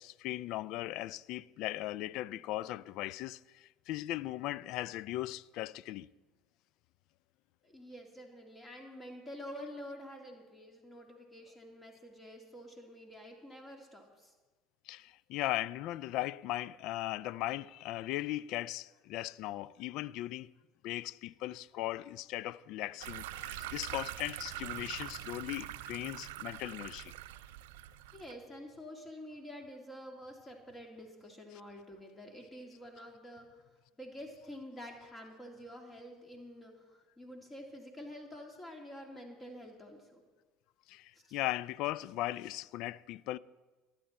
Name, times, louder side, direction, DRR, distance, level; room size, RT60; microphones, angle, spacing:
voice 1, 0.0-6.1 14.9-20.5 20.8-27.1 40.9-43.4, left 16 dB, 60° left, 0.4 m, -38 dB
voice 2, 7.6-14.3 28.1-33.6 34.0-40.2 41.1-41.4, equal, 20° left, 2.3 m, -48 dB
sound 1, 23.0-28.3, right 15 dB, 70° right, 0.5 m, -43 dB
23.5 x 9.0 x 4.3 m
hypercardioid pair, 65°, 0 cm